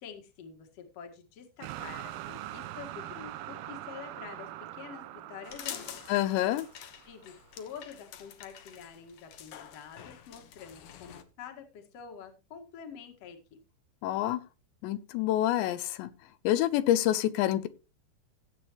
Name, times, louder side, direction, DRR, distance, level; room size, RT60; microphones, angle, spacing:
voice 1, 0.0-6.0 7.1-13.6, left 7 dB, 50° left, 2.3 m, -47 dB
sound 1, 1.6-7.7, right 14 dB, 80° right, 2.3 m, -43 dB
sound 2, 5.4-11.2, left 10 dB, 70° left, 2.0 m, -47 dB
voice 2, 6.1-6.7 14.0-14.4 14.8-16.1 16.4-17.7, left 13 dB, 90° left, 3.1 m, -27 dB
16.5 x 8.3 x 3.0 m
omnidirectional pair, 5.0 m